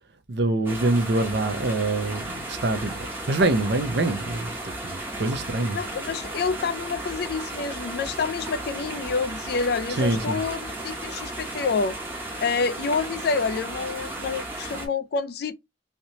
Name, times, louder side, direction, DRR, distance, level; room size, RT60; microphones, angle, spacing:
voice 1, 0.3-5.8 9.9-10.4, right 2 dB, 60° right, 0.6 m, -25 dB
sound 1, 0.7-14.9, right 1 dB, 10° right, 0.8 m, -35 dB
voice 2, 5.7-12.0 12.4-15.5, left 4 dB, 55° left, 0.3 m, -28 dB
3.2 x 2.8 x 2.7 m
head